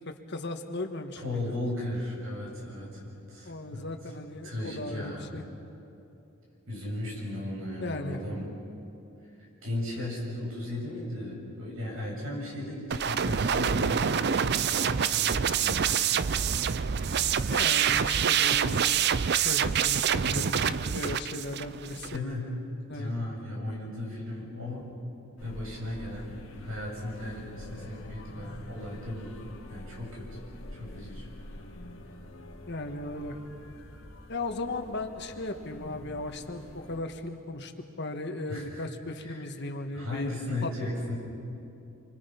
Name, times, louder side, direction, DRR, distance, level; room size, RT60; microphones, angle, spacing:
voice 1, 0.0-1.5 3.4-5.4 7.8-8.2 17.5-18.8 19.4-22.2 22.9-23.1 32.7-33.4 34.3-37.7 38.0-40.7, left 2 dB, 55° left, 5 dB, 1.6 m, -36 dB
voice 2, 1.2-3.9 4.4-5.3 6.7-8.5 9.6-14.3 14.8-16.2 22.1-22.5 22.9-24.9 25.4-29.3 29.7-30.3 30.7-31.3 38.5-38.8 39.2-39.4 39.9-41.2, left 1 dB, 80° right, -2 dB, 7.7 m, -36 dB
sound 1, 12.9-22.2, right 8 dB, 55° right, 0.5 m, -26 dB
sound 2, 25.4-37.0, left 1 dB, 90° left, 2.1 m, -46 dB
29.0 x 24.5 x 5.8 m, 2.8 s
head